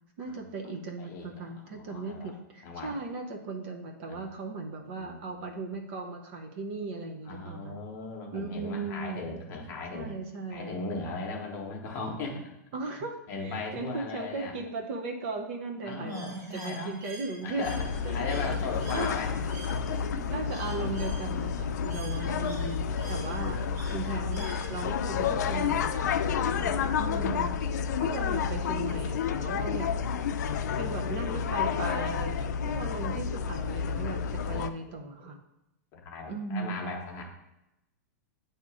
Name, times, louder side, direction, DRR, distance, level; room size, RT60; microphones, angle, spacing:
voice 1, 0.2-7.8 8.3-9.2 9.9-10.8 12.7-17.8 18.0-18.6 18.9-19.1 20.3-26.3 27.0-29.9 30.8-35.4 36.3-36.9, right 3 dB, 40° right, 3 dB, 0.7 m, -37 dB
voice 2, 1.0-2.3 2.6-3.0 4.1-4.2 4.8-5.4 7.3-10.1 10.5-12.4 13.3-14.5 15.8-16.9 17.4-17.9 18.1-19.3 19.7-20.2 23.1-23.7 26.4-27.3 28.0-28.1 34.9-35.0 35.9-37.2, left 3 dB, 25° left, 0 dB, 1.0 m, -38 dB
Bird, 16.1-25.1, right 3 dB, 65° right, 1.1 m, -49 dB
sound 1, 17.6-34.7, left 6 dB, 75° left, 0.4 m, -30 dB
8.2 x 2.9 x 4.8 m, 0.89 s
supercardioid pair, 170°, 9 cm